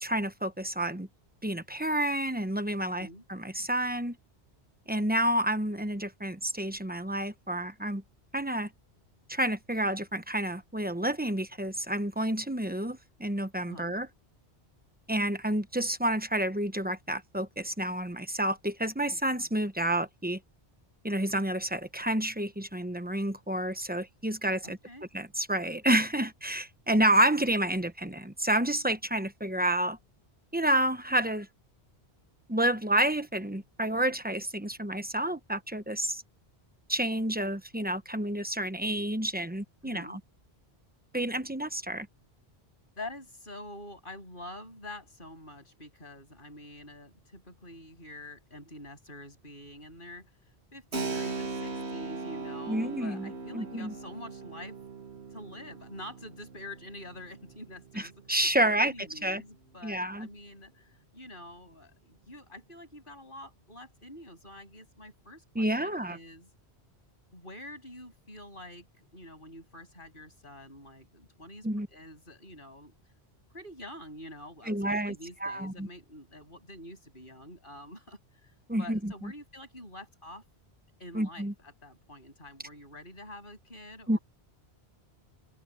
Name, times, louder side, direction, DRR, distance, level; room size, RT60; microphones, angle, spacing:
voice 1, 0.0-1.1 1.4-4.2 4.9-8.0 8.3-8.7 9.3-14.1 15.1-20.4 21.0-24.8 25.1-30.0 30.5-31.5 32.5-36.2 36.9-40.2 41.1-42.1 52.7-53.9 57.9-58.9 59.2-59.4 59.8-60.3 65.5-66.2 71.6-71.9 74.7-75.1 75.4-75.9 78.7-79.3 81.1-81.5 84.1-84.2, right 1 dB, 10° right, 0.9 m, -29 dB
voice 2, 2.9-3.2 13.7-13.9 24.6-25.0 39.8-40.2 43.0-50.3 50.7-54.8 55.3-66.5 67.3-72.9 73.5-80.4 81.0-84.2, left 1 dB, 50° left, 8.1 m, -47 dB
Keyboard (musical), 50.9-59.3, right 3 dB, 85° right, 2.0 m, -39 dB
open air
omnidirectional pair, 1.1 m